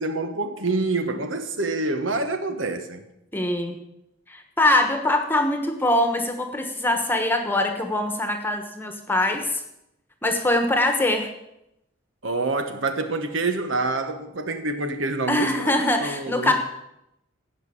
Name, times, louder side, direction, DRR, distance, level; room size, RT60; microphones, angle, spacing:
voice 1, 0.0-3.0 12.2-16.5, right 3 dB, 90° right, 1.3 m, -27 dB
voice 2, 3.3-3.8 4.3-9.6 10.2-11.3 15.3-16.5, left 1 dB, 10° left, 1.2 m, -23 dB
16.0 x 5.8 x 7.1 m
head